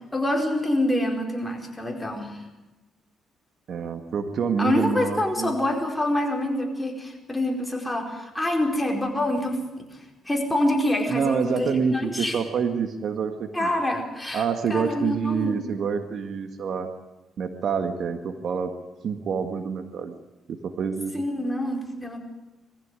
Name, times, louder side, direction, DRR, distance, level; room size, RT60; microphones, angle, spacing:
voice 1, 0.1-2.4 4.6-12.4 13.5-14.4 14.7-15.6 21.1-22.2, left 1 dB, 10° left, 1 dB, 4.8 m, -26 dB
voice 2, 3.7-5.6 11.1-13.7 14.3-16.9 17.4-18.7 19.0-20.1 20.5-21.1, right 6 dB, 60° right, 7 dB, 1.7 m, -27 dB
21.5 x 15.0 x 9.7 m, 1.0 s
cardioid pair, 90°, 0 cm